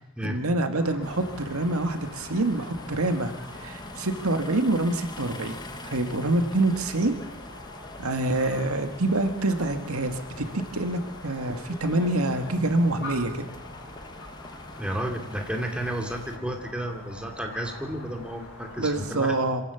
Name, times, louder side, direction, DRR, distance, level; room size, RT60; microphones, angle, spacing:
voice 1, 0.2-3.3 3.6-5.5 5.8-7.1 8.0-10.5 10.7-13.5 18.8-19.6, right 2 dB, 75° right, 7 dB, 1.9 m, -26 dB
sound 1, 0.7-19.2, left 2 dB, 55° left, 7.6 m, -44 dB
sound 2, 1.0-16.4, left 1 dB, 20° left, 1.5 m, -44 dB
voice 2, 14.8-19.3, right 1 dB, 5° right, 2 dB, 2.7 m, -32 dB
25.5 x 17.0 x 7.1 m, 0.83 s
head